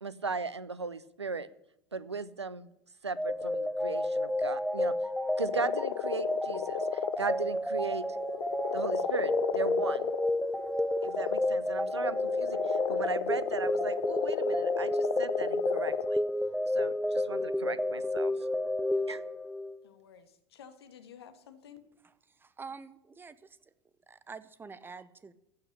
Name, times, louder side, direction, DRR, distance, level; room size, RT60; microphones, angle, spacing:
voice 1, 0.0-1.5 1.9-2.7 3.0-4.9 5.4-6.8 7.2-8.0 8.7-10.1 11.0-16.2 16.7-18.3 19.1-19.2, right 4 dB, 85° right, 17 dB, 0.7 m, -37 dB
sound 1, 3.2-19.8, left 1 dB, ahead, 0.5 m, -31 dB
sound 2, 5.4-7.6 8.0-16.1, left 18 dB, 50° left, 0.6 m, -35 dB
voice 2, 19.8-21.9, left 8 dB, 65° left, 8 dB, 1.8 m, -53 dB
voice 3, 22.4-23.6 24.1-25.3, right 5 dB, 15° right, 15 dB, 0.9 m, -46 dB
15.0 x 5.9 x 9.9 m, 0.80 s
figure-of-eight pair, 85°, 14 cm